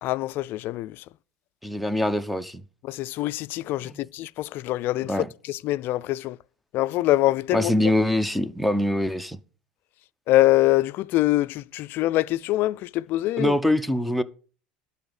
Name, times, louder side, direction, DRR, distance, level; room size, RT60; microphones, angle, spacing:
voice 1, 0.0-1.0 2.8-6.4 6.7-7.7 10.3-13.6, left 16 dB, 55° left, 0.4 m, -24 dB
voice 2, 1.6-2.6 3.8-3.9 5.1-5.3 7.5-9.4 13.4-14.2, left 1 dB, ahead, 0.8 m, -24 dB
11.5 x 4.0 x 8.0 m
hypercardioid pair, 85°, 4 cm